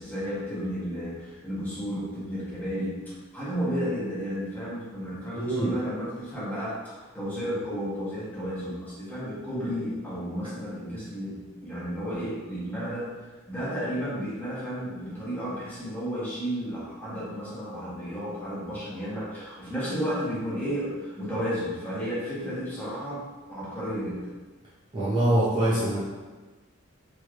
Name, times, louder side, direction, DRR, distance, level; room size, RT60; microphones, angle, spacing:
voice 1, 0.0-13.1 13.5-23.2 23.5-24.3, equal, 10° left, -10 dB, 1.0 m, -32 dB
voice 2, 5.4-5.7 24.9-26.1, right 1 dB, 25° right, -10 dB, 0.6 m, -24 dB
3.0 x 3.0 x 2.5 m, 1.2 s
head